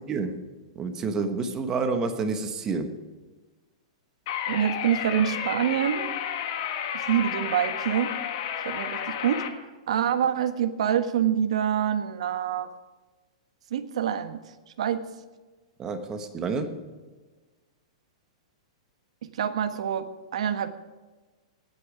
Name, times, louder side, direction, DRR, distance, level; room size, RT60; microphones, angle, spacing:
voice 1, 0.1-0.4 0.8-3.0 15.8-16.8, right 4 dB, 15° right, 8 dB, 1.1 m, -29 dB
sound 1, 4.3-9.5, left 9 dB, 45° left, 1.6 m, -32 dB
voice 2, 4.5-6.1 6.9-8.1 8.6-9.5 9.9-12.7 13.7-14.5 14.8-15.1 19.2-20.7, right 9 dB, 70° right, 8 dB, 1.4 m, -26 dB
18.5 x 8.6 x 5.0 m, 1.3 s
hypercardioid pair, 165°, 4 cm